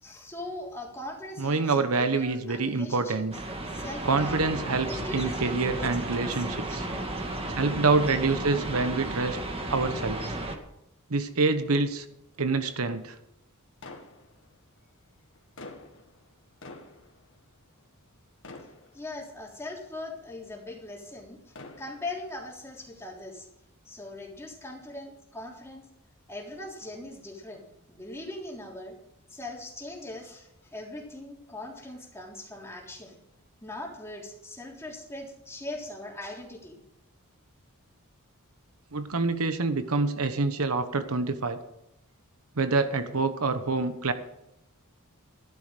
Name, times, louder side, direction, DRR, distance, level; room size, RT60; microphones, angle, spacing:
voice 1, 0.0-3.4 3.7-4.4 4.8-6.8 18.9-23.5 23.8-25.9 26.3-29.0 29.3-33.2 33.6-36.8, left 1 dB, 10° left, -2 dB, 3.4 m, -41 dB
voice 2, 1.4-3.3 4.0-6.8 7.5-9.4 9.7-10.3 11.1-12.0 12.4-13.2 38.9-41.6 42.6-44.1, right 3 dB, 70° right, 10 dB, 1.1 m, -26 dB
sound 1, 3.3-10.6, right 1 dB, 25° right, 1.7 m, -34 dB
sound 2, 13.8-14.8 15.3-18.2 18.4-19.5 20.1-20.2 21.3-22.3, left 2 dB, 60° left, 1.9 m, -47 dB
13.5 x 11.5 x 5.1 m, 0.83 s
head